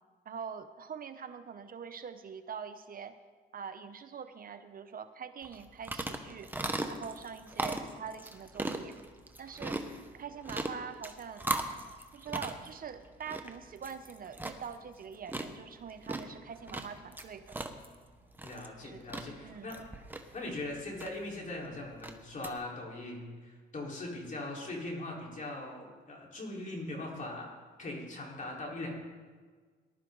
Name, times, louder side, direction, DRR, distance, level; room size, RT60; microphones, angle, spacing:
voice 1, 0.3-3.2 3.5-6.5 6.9-8.9 9.4-9.8 10.1-11.5 12.1-17.6 18.8-19.0 19.4-19.7, right 7 dB, 45° right, 10 dB, 0.8 m, -44 dB
sound 1, 5.4-22.5, right 2 dB, 10° right, 1.2 m, -40 dB
voice 2, 18.4-19.8 20.3-27.5 27.8-28.9, left 2 dB, 40° left, -2 dB, 4.3 m, -40 dB
19.5 x 12.0 x 3.9 m, 1.5 s
cardioid pair, 90°, 20 cm